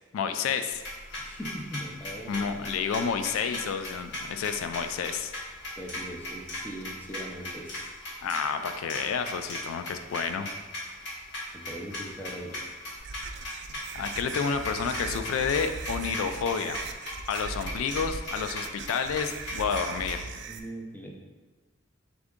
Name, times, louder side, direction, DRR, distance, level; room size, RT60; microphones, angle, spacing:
voice 1, 0.1-0.8 2.3-5.3 8.2-10.5 13.9-16.8 17.3-20.2, left 6 dB, 90° left, 8 dB, 0.3 m, -30 dB
sound 1, 0.7-20.1, left 1 dB, 60° left, 1.0 m, -38 dB
voice 2, 1.2-2.5 5.8-7.9 11.5-12.6 20.5-21.1, equal, 10° left, -1 dB, 0.5 m, -40 dB
sound 2, 13.0-20.6, right 4 dB, 60° right, 0.3 m, -39 dB
3.8 x 3.5 x 3.5 m, 1.3 s
head